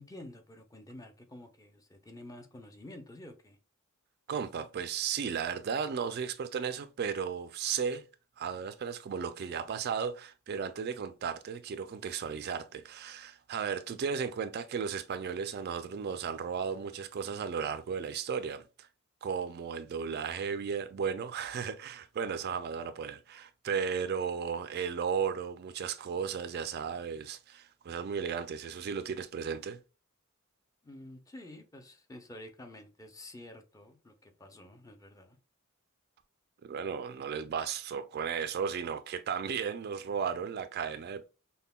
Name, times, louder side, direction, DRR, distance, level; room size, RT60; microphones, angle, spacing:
voice 1, 0.0-3.6 30.8-35.4, left 1 dB, 15° left, 0.5 m, -49 dB
voice 2, 4.3-8.0 8.4-18.9 19.2-29.8 36.6-41.3, right 6 dB, 50° right, 0.3 m, -35 dB
5.4 x 2.1 x 2.2 m
head